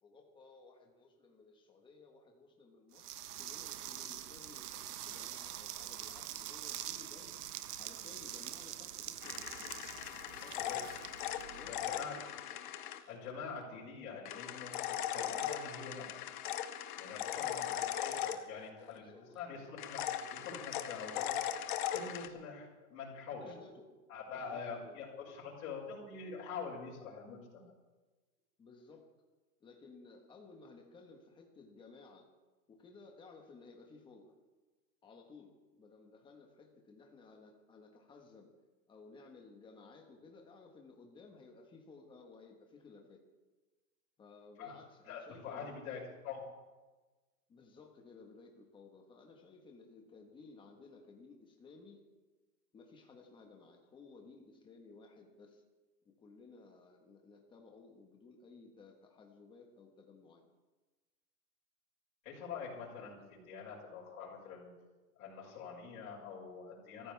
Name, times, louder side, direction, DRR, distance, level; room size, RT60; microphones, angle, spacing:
voice 1, 0.0-3.1 3.4-7.4 7.8-9.8 10.4-10.6 11.5-12.5 13.6-13.8 17.3-17.8 18.8-19.6 23.4-23.9 24.3-25.0 28.6-29.1 29.6-32.3 32.7-34.3 35.0-38.5 38.9-43.2 44.2-45.7 47.5-52.0 52.7-55.6 56.0-60.4, left 4 dB, 10° left, 2 dB, 1.4 m, -57 dB
sound 1, 2.9-11.9, right 12 dB, 70° right, 1.1 m, -45 dB
sound 2, 9.2-13.0 14.2-18.9 19.8-22.3, left 11 dB, 30° left, 0.7 m, -39 dB
voice 2, 11.5-12.1 13.1-16.3 16.9-20.0 20.3-21.4 21.9-23.6 24.1-27.7 44.6-44.8 45.1-46.4 62.2-64.7 65.1-67.1, left 5 dB, 55° left, -5 dB, 6.2 m, -45 dB
23.5 x 14.5 x 3.5 m, 1.2 s
supercardioid pair, 165°, 48 cm